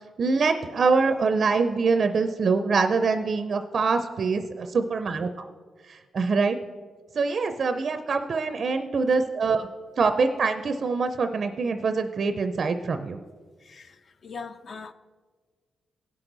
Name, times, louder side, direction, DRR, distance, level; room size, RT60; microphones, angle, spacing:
voice 1, 0.2-5.3 5.9-6.6 7.2-9.7 10.0-13.2, right 4 dB, 45° right, 0.4 m, -24 dB
voice 2, 13.6-14.9, left 5 dB, 45° left, 0.5 m, -41 dB
17.0 x 6.1 x 3.9 m
wide cardioid pair, 140°, 0 cm